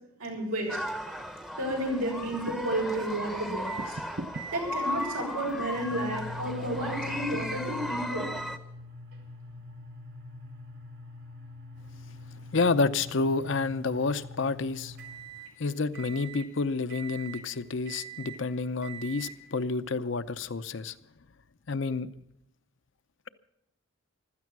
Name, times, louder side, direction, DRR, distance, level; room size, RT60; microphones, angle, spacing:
voice 1, 0.2-0.8 1.6-4.0 4.5-8.3, right 1 dB, 90° right, 6.7 m, -32 dB
sound 1, 0.7-8.6, left 1 dB, ahead, 0.8 m, -36 dB
sound 2, 2.3-2.8 3.8-4.5 5.6-5.9 7.3-7.6, right 2 dB, 45° right, 0.7 m, -40 dB
sound 3, 3.6-3.9 4.3-4.6 5.0-15.5 15.9-16.5 16.9-17.5 17.9-18.4 18.8-19.4, equal, 75° right, 4.7 m, -43 dB
voice 2, 12.5-15.0 15.6-20.9 21.7-22.1, left 3 dB, 60° left, 0.7 m, -29 dB
15.5 x 13.0 x 6.0 m
head